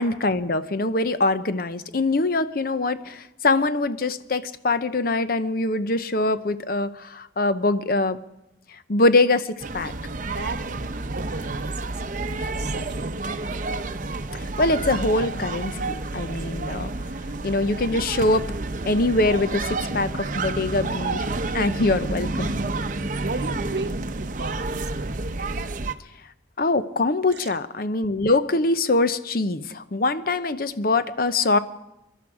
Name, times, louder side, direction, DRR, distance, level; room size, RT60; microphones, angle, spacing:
voice 1, 0.0-8.2 8.7-9.9 14.3-16.9 17.4-18.5 18.8-22.5 26.6-31.6, left 2 dB, 50° left, 12 dB, 0.7 m, -23 dB
sound 1, 9.6-25.9, right 2 dB, 45° right, 0.7 m, -30 dB
voice 2, 10.2-13.5 23.1-25.2 27.3-27.6, right 3 dB, 60° right, 11 dB, 1.0 m, -35 dB
24.5 x 12.0 x 4.8 m, 0.92 s
head